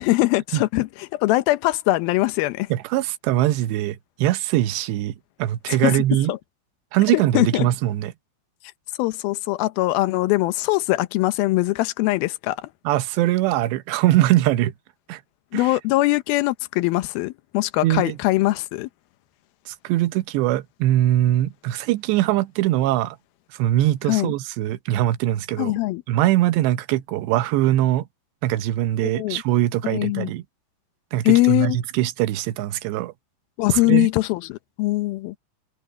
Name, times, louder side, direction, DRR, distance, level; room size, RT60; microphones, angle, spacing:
voice 1, 0.0-2.7 5.8-6.4 7.1-7.7 9.0-12.7 15.5-18.9 24.1-24.3 25.6-26.0 29.0-29.4 29.8-30.3 31.2-31.8 33.6-35.4, left 19 dB, 85° left, 2.1 m, -22 dB
voice 2, 2.7-5.1 5.4-6.3 6.9-8.1 12.9-14.7 15.1-15.2 15.5-15.7 17.8-18.2 19.7-23.2 23.5-25.7 26.1-28.1 28.4-30.4 31.1-33.1 33.8-34.1, right 14 dB, 75° right, 2.9 m, -22 dB
omnidirectional pair, 5.3 m